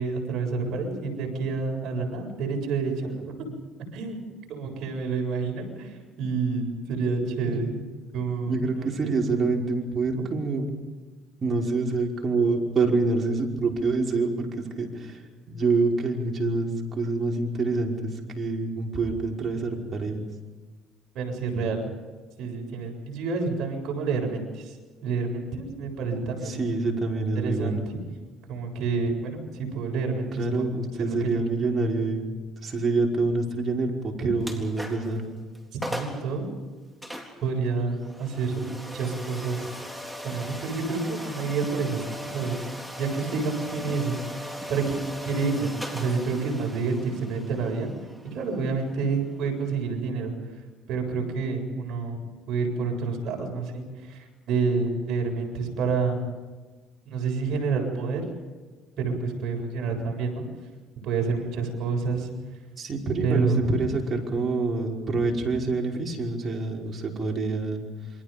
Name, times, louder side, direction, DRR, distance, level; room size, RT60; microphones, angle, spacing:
voice 1, 0.0-3.5 3.9-4.2 4.5-7.7 8.1-9.1 10.1-10.3 21.1-21.9 22.4-24.8 25.0-26.6 27.4-28.0 28.5-30.5 31.0-31.4 35.9-36.5 37.4-39.7 40.2-42.6 43.0-47.9 48.3-50.3 50.9-56.3 57.1-58.2 59.0-60.4 61.0-62.3 63.2-63.7, right 4 dB, 60° right, 1 dB, 7.6 m, -28 dB
voice 2, 8.5-10.7 11.4-15.2 15.5-20.3 26.4-27.8 30.4-32.2 32.6-35.3 62.8-67.9, right 3 dB, 35° right, 0 dB, 5.4 m, -26 dB
sound 1, 34.4-35.2 35.6-35.7 35.8-36.3 37.0-49.7, equal, ahead, 4.0 m, -39 dB
28.5 x 25.0 x 5.3 m, 1.4 s
cardioid pair, 110°, 0 cm